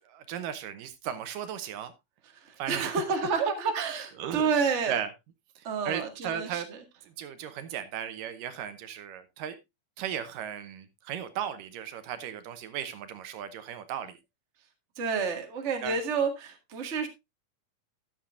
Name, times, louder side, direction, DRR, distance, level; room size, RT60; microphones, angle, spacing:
voice 1, 0.1-1.9 2.6-3.0 3.4-3.5 4.2-4.5 4.9-5.1 5.6-6.7 7.2-9.6 10.0-14.1 15.8-16.0, right 9 dB, 75° right, 2.4 m, -36 dB
voice 2, 2.7-5.0 5.6-6.6 15.0-17.1, right 5 dB, 30° right, 1.4 m, -29 dB
13.5 x 10.0 x 2.5 m
omnidirectional pair, 4.1 m